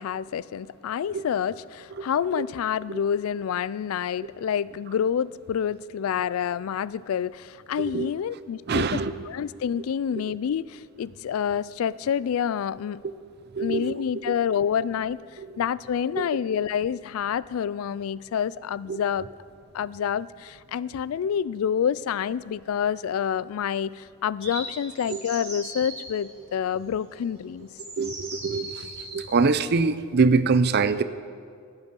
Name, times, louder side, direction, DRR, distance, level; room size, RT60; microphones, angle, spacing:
voice 1, 0.0-9.0 9.3-13.0 13.6-15.2 15.6-19.3 19.7-27.7, left 8 dB, 85° left, 20 dB, 0.3 m, -28 dB
voice 2, 8.7-9.1 13.5-13.9 15.4-15.5 16.2-16.3 18.9-19.0 25.1-25.2 28.0-31.0, right 4 dB, 50° right, 13 dB, 0.5 m, -23 dB
sound 1, 24.4-26.0 27.1-27.2 27.8-29.3, right 2 dB, 30° right, 3.7 m, -38 dB
18.0 x 8.2 x 5.3 m, 2.2 s
head